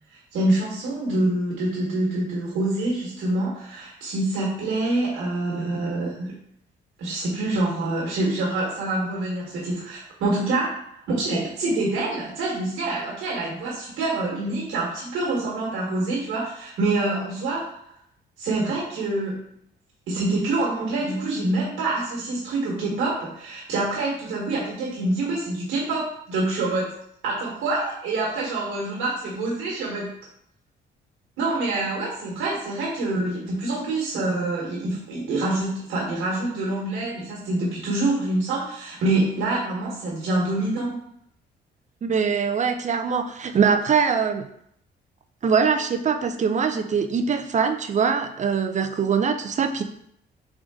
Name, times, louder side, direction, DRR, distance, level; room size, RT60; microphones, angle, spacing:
voice 1, 0.3-6.3 7.0-17.6 18.4-19.4 20.1-26.9 27.2-30.1 31.4-41.0, right 2 dB, 90° right, -4 dB, 1.5 m, -26 dB
voice 2, 42.0-44.4 45.4-49.8, right 6 dB, 35° right, 7 dB, 0.5 m, -22 dB
3.8 x 3.7 x 3.7 m, 0.70 s
cardioid pair, 90°, 20 cm